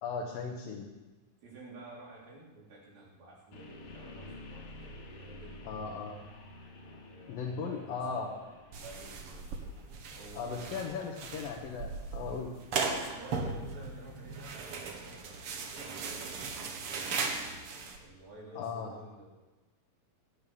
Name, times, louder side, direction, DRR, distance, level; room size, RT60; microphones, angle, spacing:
voice 1, 0.0-0.9 5.7-6.2 7.3-8.3 10.3-12.5 18.6-18.9, left 5 dB, 75° left, -1 dB, 3.1 m, -37 dB
voice 2, 1.4-5.7 7.1-9.7 10.1-10.8 12.9-17.2 17.9-19.3, right 2 dB, 80° right, -5 dB, 5.7 m, -52 dB
sound 1, 3.5-15.5, left 1 dB, 50° left, 3.1 m, -52 dB
sound 2, 8.7-18.0, right 4 dB, 55° right, 1.7 m, -38 dB
17.5 x 9.3 x 7.1 m, 1.2 s
omnidirectional pair, 4.2 m